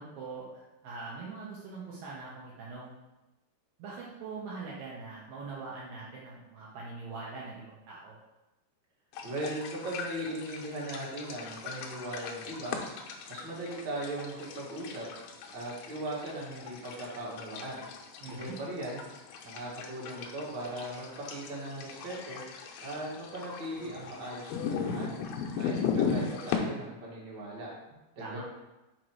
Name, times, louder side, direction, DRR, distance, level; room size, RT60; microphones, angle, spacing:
voice 1, 0.0-2.9 3.8-8.2 18.2-18.6 28.2-28.4, right 4 dB, 70° right, -5 dB, 2.4 m, -42 dB
sound 1, 9.1-26.6, left 6 dB, 80° left, 2.3 m, -38 dB
voice 2, 9.2-12.8 13.3-15.1 15.5-17.8 18.2-19.0 19.4-22.4 22.8-25.2 25.6-27.7 28.1-28.4, right 1 dB, 40° right, -5 dB, 1.7 m, -38 dB
6.3 x 4.6 x 4.6 m, 1.0 s
omnidirectional pair, 4.8 m